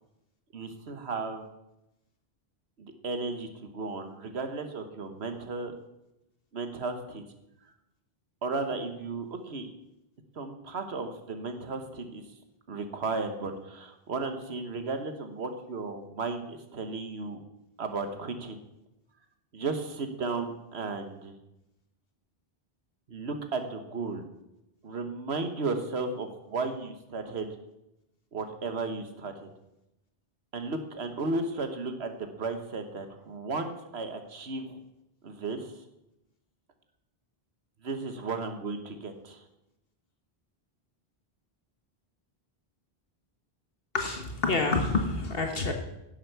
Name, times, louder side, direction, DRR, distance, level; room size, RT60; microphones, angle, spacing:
voice 1, 0.5-1.4 2.8-5.7 6.5-7.2 8.4-9.7 10.3-12.2 12.7-17.4 17.8-18.6 19.5-21.3 23.1-24.3 24.8-27.5 28.3-29.5 30.5-34.8 35.2-35.7 37.8-39.4, right 3 dB, 85° right, 7 dB, 1.5 m, -34 dB
voice 2, 43.9-45.7, left 3 dB, 65° left, 4 dB, 1.4 m, -27 dB
10.5 x 8.0 x 6.8 m, 0.90 s
omnidirectional pair, 1.1 m